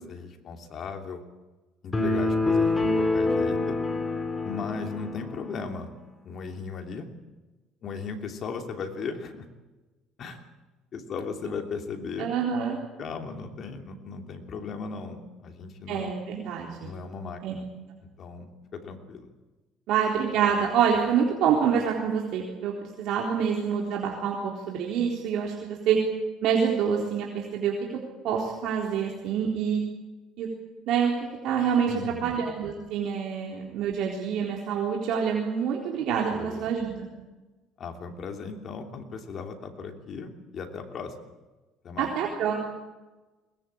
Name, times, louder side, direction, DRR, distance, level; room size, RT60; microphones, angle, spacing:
voice 1, 0.1-1.2 1.8-3.8 4.4-5.9 6.2-7.1 7.8-9.5 10.2-10.4 10.9-12.3 13.0-16.1 16.8-17.6 18.2-19.3 31.9-32.4 36.3-36.6 37.8-41.1 41.8-42.1, left 5 dB, 40° left, 4 dB, 3.1 m, -37 dB
sound 1, 1.9-5.5, left 2 dB, 15° left, 3.2 m, -26 dB
voice 2, 12.2-12.8 15.9-16.9 17.4-17.5 19.9-26.0 26.4-27.7 28.2-29.8 30.4-30.5 30.9-31.1 31.4-37.1 42.0-42.6, right 7 dB, 65° right, -1 dB, 3.9 m, -26 dB
22.0 x 20.0 x 8.8 m, 1.2 s
cardioid pair, 140°, 0 cm